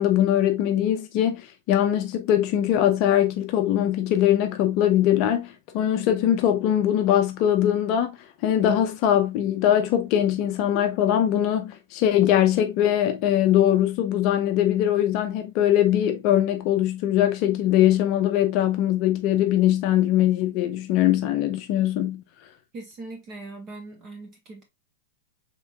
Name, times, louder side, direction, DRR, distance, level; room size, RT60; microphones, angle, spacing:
voice 1, 0.0-8.2 8.4-22.2, left 11 dB, 40° left, 0.6 m, -21 dB
voice 2, 22.7-24.6, right 2 dB, 30° right, 1.5 m, -40 dB
5.4 x 3.7 x 2.3 m
supercardioid pair, 155°, 0 cm